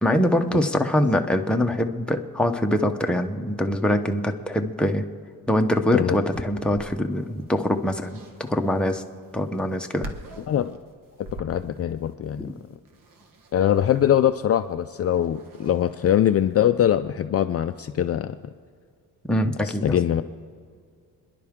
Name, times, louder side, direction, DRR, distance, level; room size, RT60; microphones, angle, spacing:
voice 1, 0.0-5.0 5.5-9.0 9.3-10.1 12.4-12.5 19.3-20.0, left 1 dB, 5° left, 3 dB, 0.8 m, -23 dB
sound 1, 6.3-16.7, right 2 dB, 65° right, 1.6 m, -45 dB
voice 2, 10.5-10.8 11.2-12.5 13.5-18.4 19.6-20.2, left 10 dB, 40° left, 8 dB, 0.4 m, -22 dB
29.0 x 11.0 x 3.6 m, 2.1 s
cardioid pair, 135°, 36 cm